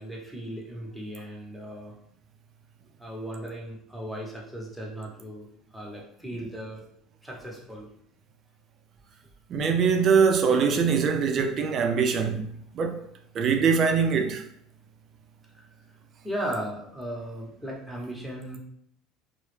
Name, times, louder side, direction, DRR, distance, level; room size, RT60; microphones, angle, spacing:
voice 1, 0.0-1.9 3.0-5.5 5.7-6.8 7.2-7.9 15.5-15.7 16.2-18.6, right 1 dB, ahead, 0.8 m, -36 dB
voice 2, 9.5-12.5 12.7-13.0 13.3-14.4, right 6 dB, 50° right, 0.4 m, -23 dB
2.1 x 2.0 x 3.1 m
supercardioid pair, 95°, 0 cm